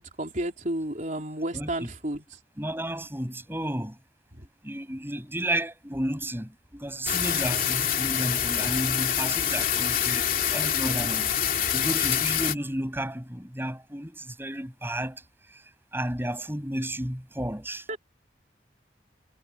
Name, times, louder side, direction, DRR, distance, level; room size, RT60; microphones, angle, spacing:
voice 1, 0.0-2.2 17.9-18.0, right 1 dB, 45° right, 4.7 m, -31 dB
voice 2, 1.5-1.9 2.6-4.0 4.6-11.3 11.7-17.9, right 1 dB, 15° right, 7.6 m, -32 dB
sound 1, 7.1-12.5, left 9 dB, 50° left, 2.9 m, -26 dB
head